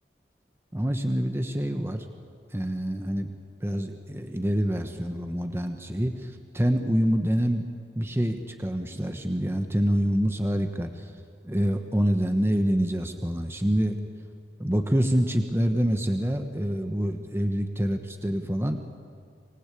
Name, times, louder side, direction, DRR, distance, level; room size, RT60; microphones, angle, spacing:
voice 1, 0.7-2.1 2.5-3.3 3.6-7.7 7.9-14.0 14.6-18.9, equal, 15° right, 6 dB, 1.2 m, -26 dB
26.0 x 20.0 x 8.5 m, 2.4 s
head